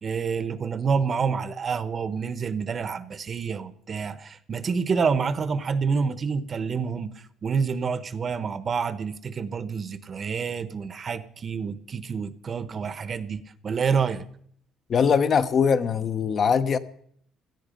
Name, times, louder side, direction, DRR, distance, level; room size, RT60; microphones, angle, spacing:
voice 1, 0.0-7.1 7.4-14.3, right 5 dB, 40° right, 1.0 m, -28 dB
voice 2, 14.9-16.8, left 6 dB, 45° left, 1.0 m, -21 dB
17.0 x 13.0 x 5.3 m
cardioid pair, 115°, 0 cm